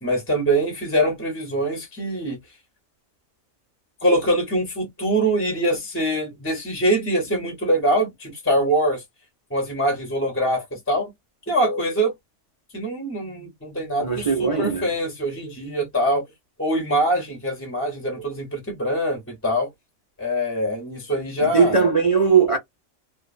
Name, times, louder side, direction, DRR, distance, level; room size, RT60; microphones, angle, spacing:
voice 1, 0.0-2.4 4.0-9.0 9.5-11.1 11.5-12.1 12.7-16.2 16.6-19.7 20.2-21.8, right 1 dB, 10° left, 0.7 m, -23 dB
voice 2, 14.0-14.9 21.4-22.6, right 6 dB, 45° right, 0.4 m, -19 dB
2.4 x 2.3 x 2.4 m
omnidirectional pair, 1.5 m